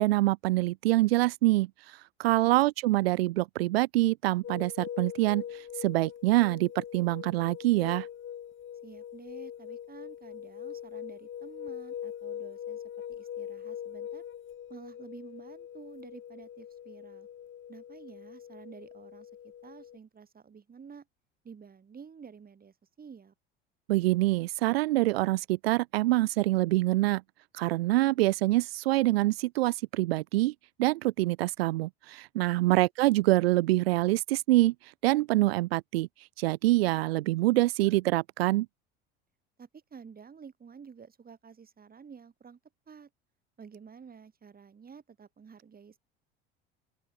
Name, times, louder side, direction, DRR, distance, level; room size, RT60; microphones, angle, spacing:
voice 1, 0.0-8.1 23.9-27.2 27.5-30.5 30.8-38.7, right 18 dB, 85° right, 0.5 m, -25 dB
voice 2, 2.3-2.6 8.8-12.8 13.1-14.2 14.7-17.3 17.7-19.3 19.6-21.1 21.4-23.3 32.5-32.8 39.6-42.6 42.9-43.1 43.6-46.0, right 6 dB, 30° right, 5.7 m, -50 dB
sound 1, 4.4-20.0, left 9 dB, 40° left, 4.2 m, -42 dB
open air
hypercardioid pair, 75°, 29 cm